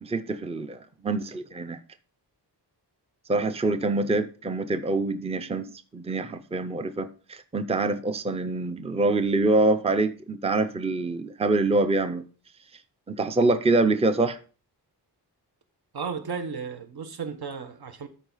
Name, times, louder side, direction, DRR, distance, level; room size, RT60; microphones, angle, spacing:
voice 1, 0.0-1.8 3.3-12.2 13.1-14.4, right 2 dB, 15° right, 0.6 m, -25 dB
voice 2, 15.9-18.1, right 5 dB, 65° right, 1.3 m, -34 dB
13.0 x 4.8 x 3.9 m
wide cardioid pair, 145°, 41 cm